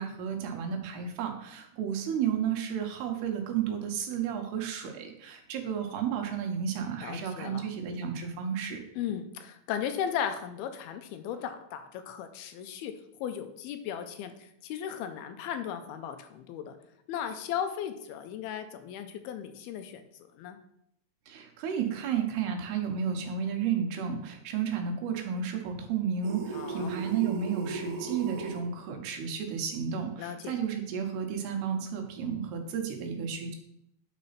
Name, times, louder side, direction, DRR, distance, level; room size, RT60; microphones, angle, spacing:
voice 1, 0.0-8.8 21.3-33.6, right 7 dB, 85° right, 4 dB, 3.2 m, -32 dB
voice 2, 7.0-7.7 9.0-12.9 13.2-16.8 17.1-20.0 20.4-20.6 26.5-26.9 30.2-30.6, left 9 dB, 85° left, 8 dB, 2.5 m, -36 dB
sound 1, 26.2-28.6, right 4 dB, 65° right, 3.2 m, -37 dB
9.8 x 4.2 x 5.7 m, 0.76 s
omnidirectional pair, 4.6 m